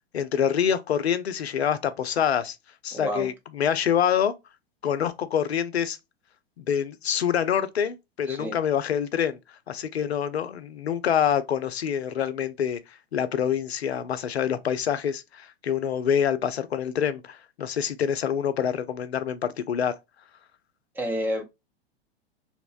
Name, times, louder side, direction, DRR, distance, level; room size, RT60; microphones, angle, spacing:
voice 1, 0.1-2.6 2.8-4.3 4.8-6.0 6.6-9.4 9.7-19.9, left 8 dB, 80° left, 0.5 m, -26 dB
voice 2, 2.9-3.3 8.3-8.6 20.9-21.4, equal, 5° right, 0.4 m, -29 dB
2.8 x 2.1 x 2.3 m
figure-of-eight pair, 100°, 32 cm